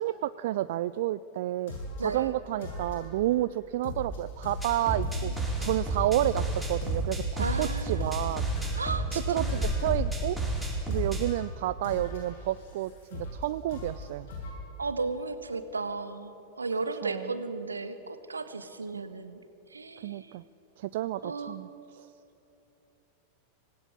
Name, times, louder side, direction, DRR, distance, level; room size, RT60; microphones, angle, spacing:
voice 1, 0.0-1.7 2.0-5.3 5.6-8.4 9.3-10.4 10.9-14.3 17.0-17.3 18.9-19.0 20.0-20.4 20.8-22.1, right 14 dB, 55° right, 16 dB, 0.4 m, -30 dB
sound 1, 1.7-2.1 2.6-3.3 3.8-8.9 9.5-10.0 10.9-11.4 11.8-13.4 13.7-14.5, left 1 dB, 55° left, 7.7 m, -39 dB
sound 2, 4.6-11.2, right 1 dB, ahead, 5.1 m, -30 dB
voice 2, 4.9-5.3 7.4-8.1 8.8-9.6 14.8-19.4 19.7-20.3 21.2-21.7, right 3 dB, 75° right, 11 dB, 1.5 m, -35 dB
25.0 x 18.0 x 8.8 m, 3.0 s
figure-of-eight pair, 90°, 0 cm